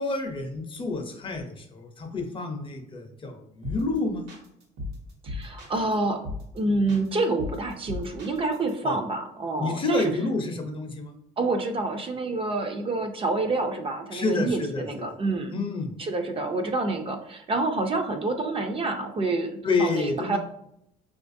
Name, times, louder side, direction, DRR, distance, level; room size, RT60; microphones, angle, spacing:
voice 1, 0.0-4.3 8.8-8.9 9.6-11.1 14.1-15.1 15.5-15.9 19.6-20.4, left 3 dB, 30° left, 4 dB, 0.6 m, -29 dB
sound 1, 3.6-4.0 4.3-5.9 6.2-6.6 6.9-8.7, left 2 dB, 80° right, 1.0 m, -36 dB
voice 2, 5.2-6.2 6.5-10.1 11.4-15.5 16.0-20.4, right 2 dB, 35° right, 5 dB, 0.4 m, -27 dB
4.3 x 2.4 x 2.6 m, 0.74 s
cardioid pair, 110°, 17 cm